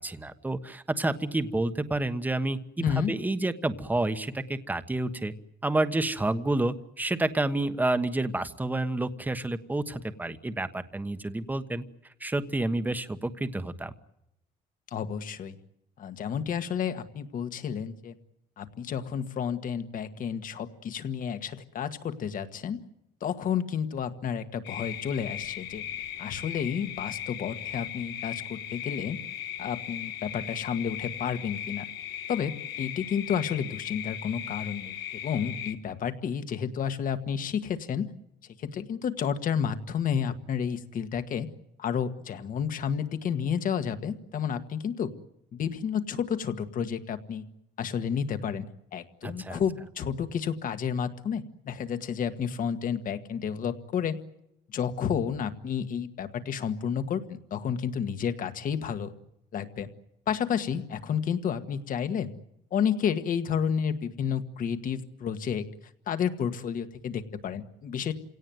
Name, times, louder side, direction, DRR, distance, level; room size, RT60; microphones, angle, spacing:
voice 1, 0.0-5.3 5.6-11.8 12.2-13.9 49.2-49.6, right 2 dB, 10° right, 10 dB, 1.2 m, -29 dB
voice 2, 2.8-3.1 14.9-15.6 16.0-18.1 18.6-22.8 23.2-25.8 26.2-29.2 29.6-31.9 32.3-34.9 35.2-38.1 38.6-41.5 41.8-45.1 45.5-47.4 47.8-48.7 48.9-54.2 54.7-59.1 59.5-59.9 60.3-62.3 62.7-65.7 66.1-68.1, left 7 dB, 55° left, 9 dB, 1.7 m, -31 dB
sound 1, 24.6-35.7, left 11 dB, 90° left, 1.9 m, -38 dB
28.0 x 17.5 x 9.3 m, 0.84 s
cardioid pair, 110°, 17 cm